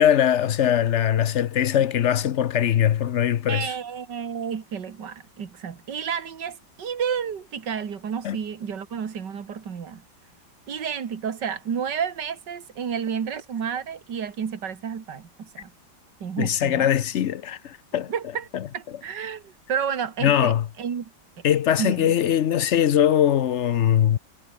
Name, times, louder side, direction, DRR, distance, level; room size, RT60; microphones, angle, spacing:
voice 1, 0.0-3.7 8.2-8.4 16.4-18.1 18.5-18.7 20.2-20.7 21.4-24.2, left 10 dB, 75° left, 0.6 m, -21 dB
voice 2, 3.5-10.0 10.7-15.7 16.2-16.9 18.1-18.5 18.7-20.5 20.8-21.1 21.8-22.1, right 7 dB, 65° right, 2.5 m, -31 dB
omnidirectional pair, 2.1 m